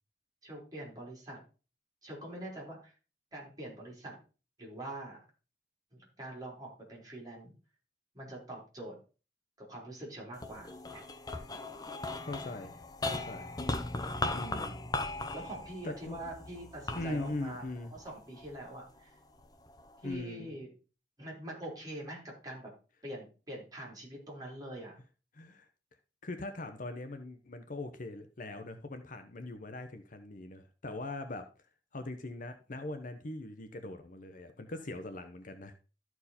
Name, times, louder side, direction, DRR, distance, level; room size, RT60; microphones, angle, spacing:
voice 1, 0.4-1.4 2.0-2.9 3.3-4.2 4.6-5.2 5.9-7.5 8.1-9.0 9.6-11.0 15.3-19.2 20.0-20.7 21.2-22.7 23.0-25.0, right 1 dB, 20° right, -3 dB, 3.9 m, -44 dB
sound 1, 10.3-18.8 19.4-20.1, left 2 dB, 25° left, 0.7 m, -38 dB
voice 2, 12.2-12.7 13.1-13.5 14.3-14.9 15.8-16.2 16.9-17.9 20.0-20.5 25.3-25.7 26.2-31.5 31.9-35.7, left 2 dB, 50° left, 8 dB, 0.9 m, -41 dB
13.0 x 4.7 x 4.2 m, 0.34 s
head